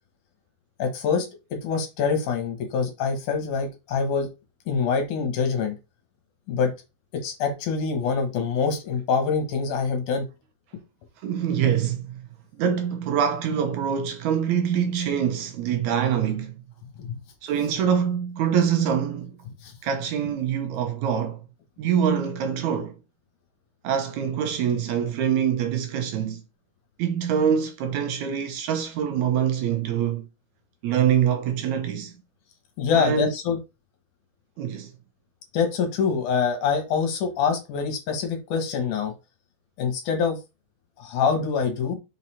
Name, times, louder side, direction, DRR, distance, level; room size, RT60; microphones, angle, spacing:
voice 1, 0.8-4.3 4.7-5.8 6.5-6.7 7.1-10.3 17.0-17.2 19.6-19.7 32.8-33.6 35.5-39.1 39.8-40.4 41.0-42.0, left 5 dB, 70° left, 2.8 m, -25 dB
voice 2, 11.2-12.2 12.6-16.6 17.4-19.3 19.8-21.4 21.8-23.0 23.8-26.4 27.0-30.3 30.8-32.1 32.9-33.3 34.6-34.9, right 8 dB, 75° right, 1.9 m, -24 dB
5.7 x 4.1 x 4.2 m
omnidirectional pair, 3.8 m